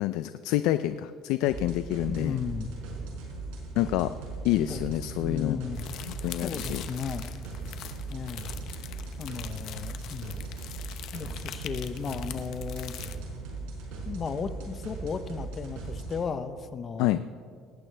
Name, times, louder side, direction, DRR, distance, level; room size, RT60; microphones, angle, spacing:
voice 1, 0.0-2.4 3.8-4.1 4.4-5.6 6.0-6.8 17.0-17.2, left 14 dB, 80° left, 12 dB, 0.4 m, -27 dB
sound 1, 1.5-16.2, right 3 dB, 90° right, 4.6 m, -38 dB
voice 2, 2.1-2.7 4.7-4.8 5.2-5.9 6.4-7.3 8.1-8.5 9.2-10.4 11.1-12.9 14.0-17.1, left 6 dB, 35° left, 11 dB, 0.8 m, -35 dB
sound 2, 5.7-13.2, left 11 dB, 60° left, 0.8 m, -43 dB
19.0 x 15.5 x 3.4 m, 2.1 s
cardioid pair, 125°, 0 cm